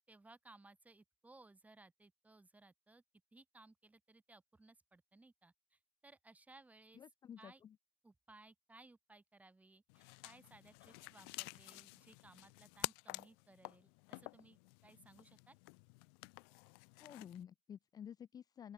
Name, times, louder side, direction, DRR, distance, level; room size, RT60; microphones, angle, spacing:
voice 1, 0.1-3.0 3.3-7.0 7.4-7.6 8.0-15.6, right 2 dB, 10° right, 6.6 m, -62 dB
voice 2, 6.9-7.7 17.0-18.7, left 8 dB, 25° left, 0.7 m, -52 dB
sound 1, 9.9-17.4, left 35 dB, 55° left, 1.1 m, -50 dB
open air
figure-of-eight pair, 85°, 15 cm